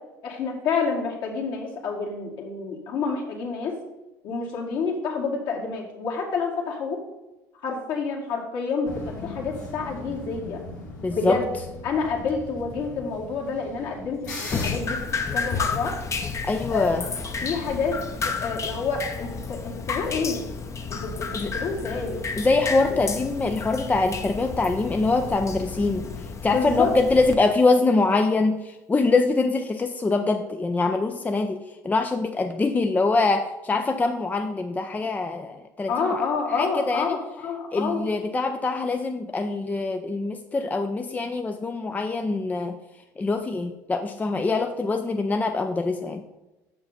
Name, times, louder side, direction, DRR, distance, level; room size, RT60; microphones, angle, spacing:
voice 1, 0.2-3.8 4.2-7.0 7.6-10.6 11.1-11.5 11.8-15.0 15.3-16.0 16.7-16.9 17.4-18.0 18.2-20.4 20.9-22.2 22.9-23.0 26.5-26.9 35.9-38.0, left 5 dB, 55° left, -2 dB, 2.0 m, -28 dB
sound 1, 8.8-14.7, left 3 dB, 80° left, 1.8 m, -39 dB
voice 2, 11.0-11.4 16.4-17.0 21.3-21.5 22.4-26.0 26.4-36.2 36.6-37.2 37.7-42.8 43.2-46.2, left 3 dB, 15° left, 6 dB, 0.5 m, -24 dB
Drip, 14.5-27.4, left 5 dB, 30° left, 0.9 m, -31 dB
6.6 x 6.6 x 4.1 m, 1.0 s
hypercardioid pair, 65°, 9 cm